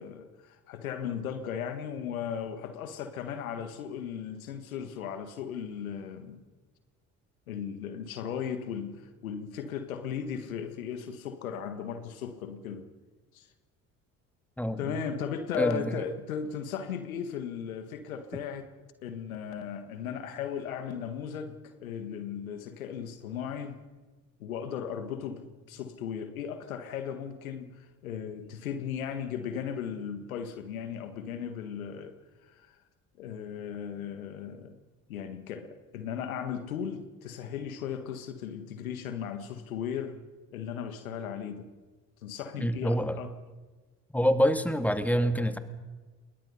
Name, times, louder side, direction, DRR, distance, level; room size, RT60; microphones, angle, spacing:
voice 1, 0.0-6.4 7.5-12.9 13.3-13.5 14.8-18.6 19.0-23.8 24.4-32.1 32.5-32.8 33.2-34.8 35.1-40.2 40.5-41.7 42.2-43.3, left 8 dB, 85° left, 1.6 m, -36 dB
voice 2, 14.6-14.9 15.6-16.0 42.6-43.2 44.1-45.6, equal, 5° left, 2.1 m, -26 dB
27.0 x 21.5 x 5.6 m
hypercardioid pair, 50°, 41 cm